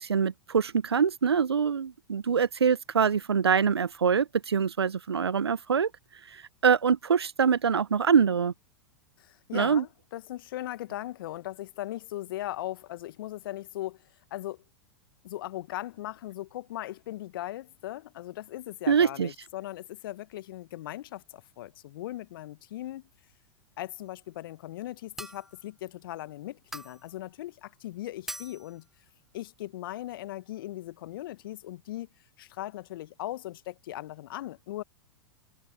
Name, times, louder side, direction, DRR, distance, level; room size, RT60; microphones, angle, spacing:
voice 1, 0.0-5.9 6.3-8.5 9.5-9.8 18.9-19.3, right 6 dB, 80° right, 1.0 m, -24 dB
voice 2, 9.2-14.0 14.3-14.6 15.2-23.1 23.8-28.9 29.3-32.1 32.4-34.8, left 15 dB, 55° left, 1.5 m, -38 dB
sound 1, 25.2-25.6 26.7-27.1 28.3-28.8, right 1 dB, ahead, 1.0 m, -41 dB
open air
figure-of-eight pair, 95°, 13 cm